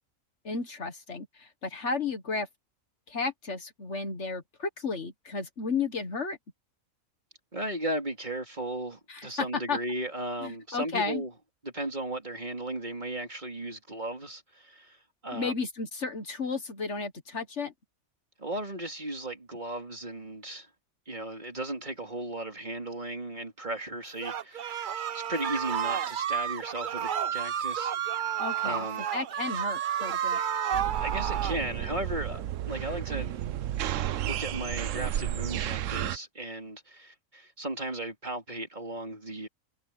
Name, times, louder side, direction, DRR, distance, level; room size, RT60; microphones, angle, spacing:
voice 1, 0.4-2.5 3.1-6.4 9.1-9.3 9.7-9.8 10.4-11.2 15.3-17.7 28.4-28.9 29.1-30.4, left 4 dB, 55° left, 1.9 m, -33 dB
voice 2, 7.5-11.3 11.6-15.5 18.4-20.7 21.1-27.9 28.6-29.1 31.0-33.4 34.2-39.5, right 1 dB, 35° right, 3.3 m, -36 dB
sound 1, 24.2-31.6, right 9 dB, 55° right, 0.6 m, -31 dB
sound 2, 30.7-36.2, right 11 dB, 70° right, 1.0 m, -32 dB
omnidirectional pair, 1.4 m